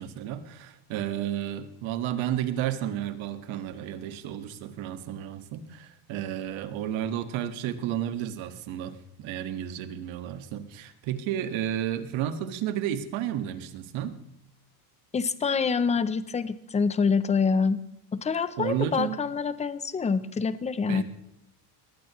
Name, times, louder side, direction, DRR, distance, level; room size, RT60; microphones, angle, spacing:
voice 1, 0.0-14.2 18.6-19.2 20.9-21.0, right 11 dB, 65° right, 9 dB, 1.8 m, -32 dB
voice 2, 15.1-17.8 18.1-21.0, left 5 dB, 15° left, 14 dB, 0.5 m, -26 dB
21.0 x 16.5 x 3.1 m, 0.81 s
cardioid pair, 160°, 50 cm